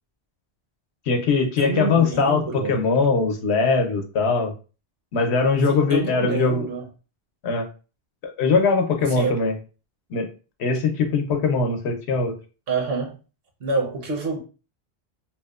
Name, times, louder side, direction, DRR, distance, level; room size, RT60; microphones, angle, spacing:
voice 1, 1.1-2.4 2.7-4.5 5.1-6.6 7.4-7.7 8.4-9.6 10.1-10.3 10.6-12.3, left 4 dB, 80° left, 0.9 m, -21 dB
voice 2, 1.6-2.8 5.7-6.9 9.1-9.4 12.7-13.2 13.6-14.4, right 3 dB, 65° right, 0.9 m, -27 dB
2.8 x 2.1 x 2.2 m
omnidirectional pair, 1.1 m